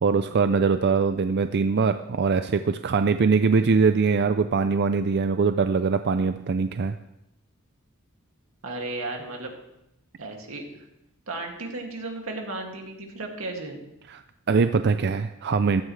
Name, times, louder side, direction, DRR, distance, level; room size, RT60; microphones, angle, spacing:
voice 1, 0.0-7.0 14.1-14.2 14.5-15.8, right 5 dB, 55° right, 10 dB, 0.4 m, -22 dB
voice 2, 8.6-9.5 10.2-10.6 11.3-13.8, right 2 dB, 90° right, 1 dB, 2.4 m, -34 dB
15.5 x 13.0 x 3.3 m, 0.85 s
head